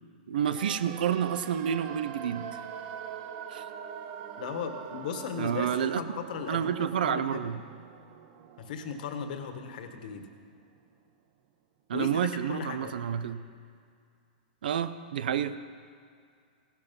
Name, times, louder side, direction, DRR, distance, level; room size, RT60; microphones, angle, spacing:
voice 1, 0.3-2.5 3.5-3.6 5.4-6.0 6.5-7.6 11.9-13.4 14.6-15.6, right 8 dB, 75° right, 13 dB, 0.8 m, -29 dB
sound 1, 0.5-10.5 10.7-10.8, right 8 dB, 45° right, 0.9 m, -44 dB
voice 2, 4.4-5.7 6.0-7.5 8.6-10.3 11.9-12.1 12.5-12.9, left 6 dB, 60° left, 6 dB, 1.7 m, -37 dB
17.0 x 12.5 x 5.5 m, 2.3 s
hypercardioid pair, 145°, 5 cm